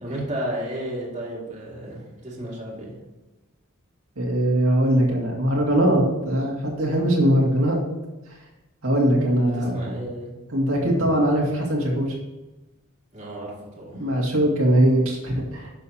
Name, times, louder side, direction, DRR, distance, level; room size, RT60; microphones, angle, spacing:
voice 1, 0.0-2.9 9.4-10.3 13.1-14.1, right 1 dB, 35° right, -4 dB, 2.2 m, -33 dB
voice 2, 4.2-7.8 8.8-9.9 10.5-12.1 13.9-15.7, right 1 dB, 85° right, -2 dB, 2.1 m, -21 dB
10.5 x 6.5 x 2.8 m, 1.1 s
head